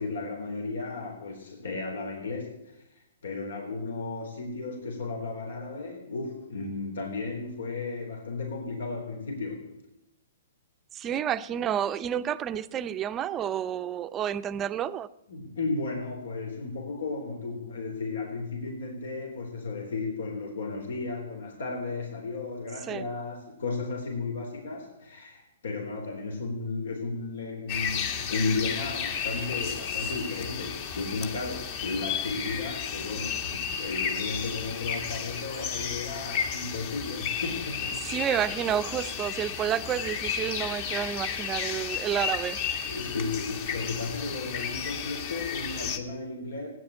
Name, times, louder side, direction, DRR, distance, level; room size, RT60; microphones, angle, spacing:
voice 1, 0.0-2.8 3.2-9.8 15.3-38.4 42.9-46.7, left 3 dB, 80° left, 3.7 m, -34 dB
voice 2, 10.9-15.1 22.9-23.1 38.0-42.6, right 9 dB, 20° right, 0.6 m, -30 dB
sound 1, 27.7-46.0, left 7 dB, 40° left, 1.8 m, -33 dB
16.0 x 9.8 x 8.7 m
hypercardioid pair, 150°, 0 cm